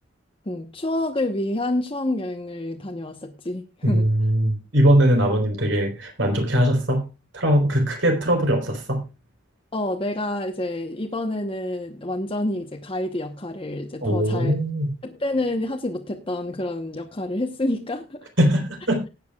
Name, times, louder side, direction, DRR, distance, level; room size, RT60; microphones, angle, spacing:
voice 1, 0.5-4.0 9.7-14.5 15.0-18.3, left 1 dB, 30° left, 2 dB, 1.0 m, -28 dB
voice 2, 3.8-7.1 7.3-9.0 14.0-14.9 18.4-19.0, equal, 75° right, 4 dB, 4.1 m, -20 dB
19.5 x 9.4 x 2.3 m, 0.28 s
head